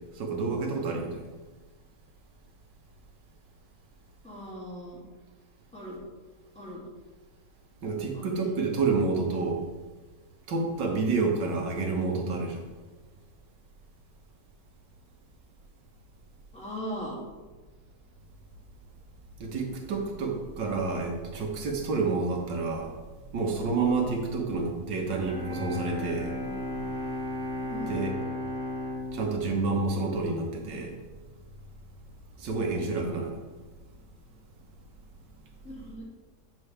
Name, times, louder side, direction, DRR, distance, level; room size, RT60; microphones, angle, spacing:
voice 1, 0.2-1.2 7.8-9.7 10.5-12.7 19.4-22.9 23.3-26.8 27.9-28.1 29.1-30.9 32.4-33.4, right 3 dB, 85° right, 1 dB, 1.9 m, -29 dB
voice 2, 4.2-5.1 5.7-6.0 6.5-6.8 8.1-8.5 16.5-17.2 27.7-28.1 35.6-36.0, equal, 5° left, -5 dB, 2.2 m, -39 dB
Bowed string instrument, 25.1-31.1, left 2 dB, 50° right, 1.3 m, -36 dB
9.3 x 6.9 x 3.3 m, 1.3 s
omnidirectional pair, 1.9 m